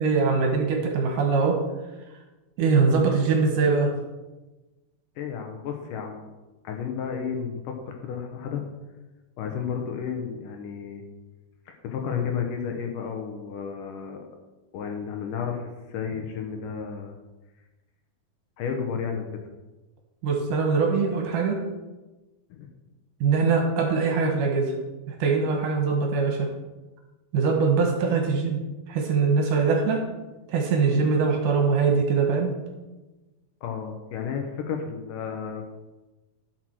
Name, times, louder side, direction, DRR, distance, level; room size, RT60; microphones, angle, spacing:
voice 1, 0.0-1.6 2.6-3.9 20.2-21.6 23.2-24.7 25.1-26.5 27.3-28.6 28.9-30.0 30.5-32.5, right 4 dB, 70° right, 1 dB, 2.5 m, -22 dB
voice 2, 5.2-6.3 6.6-8.6 9.4-11.0 11.7-14.2 14.7-17.2 18.6-19.3 22.5-22.7 33.6-35.7, left 7 dB, 75° left, 3 dB, 2.3 m, -32 dB
11.5 x 6.1 x 4.6 m, 1.1 s
omnidirectional pair, 4.3 m